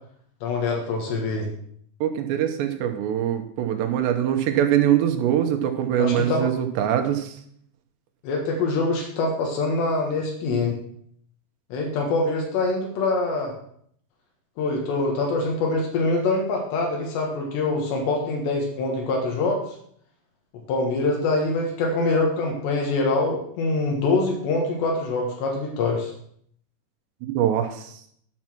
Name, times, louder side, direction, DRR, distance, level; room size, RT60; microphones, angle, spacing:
voice 1, 0.4-1.5 6.0-6.5 8.2-10.8 11.7-13.5 14.6-19.6 20.7-26.1, left 3 dB, 80° left, 0 dB, 3.7 m, -24 dB
voice 2, 2.0-7.4 27.2-28.0, right 10 dB, 85° right, 6 dB, 3.1 m, -23 dB
12.0 x 6.1 x 6.0 m, 0.66 s
omnidirectional pair, 5.0 m